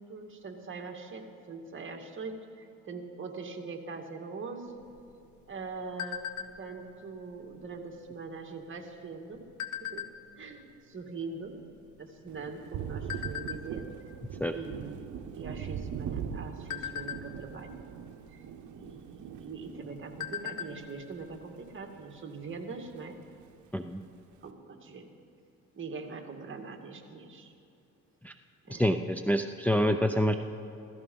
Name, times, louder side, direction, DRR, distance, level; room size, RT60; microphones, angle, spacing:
voice 1, 0.1-4.8 5.5-6.2 6.6-9.4 9.8-10.1 10.4-11.6 12.0-13.9 14.5-18.0 18.3-18.5 18.7-23.2 24.4-25.1 25.7-27.5 28.7-28.9, right 4 dB, 40° right, 3 dB, 2.1 m, -42 dB
sound 1, 4.8-6.8 7.3-7.6 7.8-8.2 8.9-10.4 11.0-11.1 11.3-12.6 13.1-13.6 14.1-14.4 14.7-14.9 15.3-15.9 16.3-17.7 18.8-18.9 19.3-19.4 19.8-20.9 21.1-21.2 21.6-21.7, left 9 dB, 80° left, 1.1 m, -38 dB
Thunder, 12.3-22.0 22.3-23.5, right 8 dB, 75° right, 0.9 m, -41 dB
voice 2, 28.7-30.3, equal, 5° left, 6 dB, 0.6 m, -27 dB
15.5 x 14.5 x 5.5 m, 2.9 s
cardioid pair, 90°, 30 cm